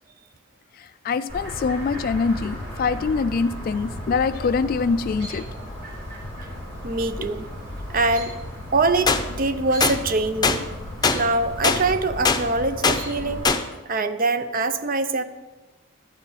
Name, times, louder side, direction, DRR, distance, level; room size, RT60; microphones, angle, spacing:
voice 1, 0.8-5.5, left 4 dB, 50° left, 10 dB, 0.3 m, -24 dB
Chirp tweet, 1.3-13.4, left 1 dB, 70° right, 4.1 m, -35 dB
voice 2, 6.8-7.5 7.9-8.3 8.7-10.7 11.1-13.5 13.9-15.2, right 3 dB, 45° right, 11 dB, 0.7 m, -23 dB
sound 1, 9.1-9.2 9.8-10.0 10.4-10.6 11.0-11.2 11.6-11.8 12.2-12.4 12.8-13.0 13.4-13.6, left 4 dB, 20° left, 0.6 m, -19 dB
12.0 x 7.3 x 5.6 m, 1.2 s
head